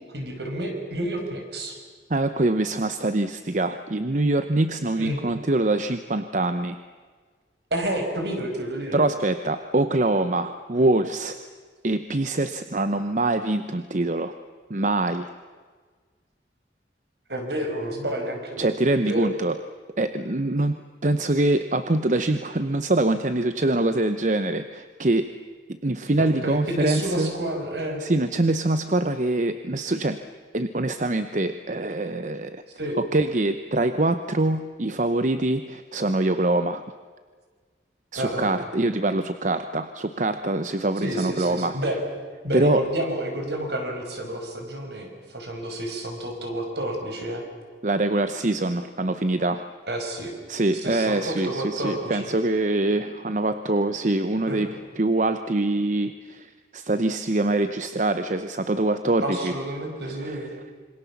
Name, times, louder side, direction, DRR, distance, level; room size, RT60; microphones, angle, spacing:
voice 1, 0.1-1.8 5.0-5.2 7.7-9.0 17.3-18.6 18.9-19.3 26.4-28.0 32.8-33.0 38.2-38.5 41.0-42.0 42.4-47.4 49.9-50.3 50.8-52.3 54.5-54.7 59.2-60.5, right 1 dB, 65° right, 3 dB, 5.4 m, -30 dB
voice 2, 2.1-6.8 8.9-11.4 11.8-14.3 14.7-15.3 18.6-19.6 20.0-25.3 25.8-27.3 28.0-30.2 30.5-32.6 33.1-36.8 38.1-41.8 42.5-42.8 47.8-49.6 50.5-59.5 60.0-60.4, right 2 dB, 40° right, 10 dB, 0.8 m, -24 dB
27.0 x 25.0 x 7.2 m, 1.5 s
head